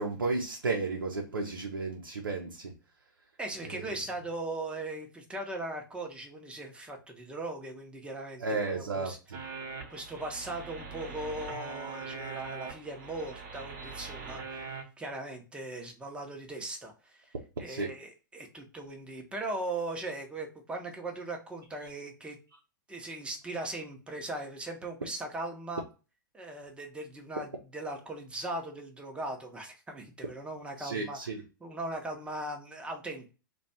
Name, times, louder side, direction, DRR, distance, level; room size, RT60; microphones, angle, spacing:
voice 1, 0.0-2.8 3.6-4.0 8.4-9.4 17.6-17.9 30.8-31.4, right 3 dB, 80° right, 0.6 m, -33 dB
voice 2, 3.4-9.2 9.7-17.3 17.6-22.4 22.9-25.8 26.3-31.2 31.6-33.3, right 2 dB, 10° right, 0.7 m, -39 dB
sound 1, 9.3-14.8, right 5 dB, 50° right, 0.9 m, -42 dB
2.5 x 2.3 x 4.0 m
figure-of-eight pair, 105°, 11 cm